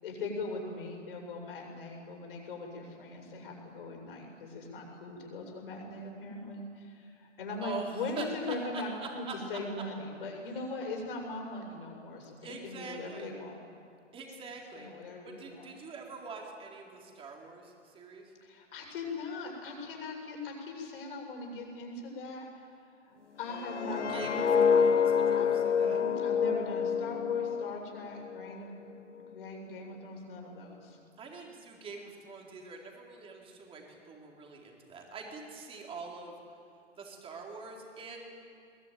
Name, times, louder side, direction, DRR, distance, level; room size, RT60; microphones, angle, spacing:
voice 1, 0.0-13.7 14.8-15.7 18.4-22.7 23.0-24.4 25.3-28.7 29.2-31.0, left 3 dB, 45° left, 1 dB, 7.0 m, -40 dB
voice 2, 8.2-9.3 12.4-13.3 14.1-14.9 15.2-18.3 23.8-26.0 31.2-36.4 37.0-38.3, right 4 dB, 15° right, 0 dB, 3.9 m, -44 dB
sound 1, 23.5-28.5 28.9-29.2, left 6 dB, 70° left, 0.8 m, -28 dB
22.0 x 21.0 x 9.4 m, 2.5 s
figure-of-eight pair, 120°, 37 cm